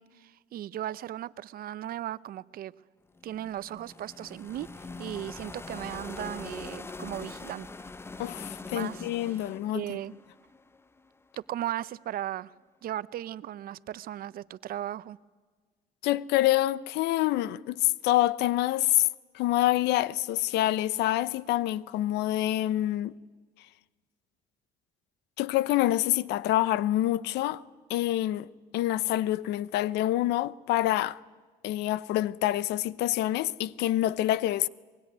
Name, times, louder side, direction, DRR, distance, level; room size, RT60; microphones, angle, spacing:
voice 1, 0.0-2.7 3.2-7.7 8.7-9.4 9.7-10.1 11.4-12.5 12.8-15.2, right 12 dB, 60° right, 0.7 m, -37 dB
sound 1, 3.2-11.2, left 3 dB, 15° left, 0.7 m, -43 dB
voice 2, 8.2-10.0 16.0-19.1 19.3-23.1 25.4-27.6 27.9-28.5 28.7-31.2 31.6-34.7, left 15 dB, 85° left, 0.7 m, -26 dB
23.0 x 22.5 x 9.4 m
cardioid pair, 110°, 17 cm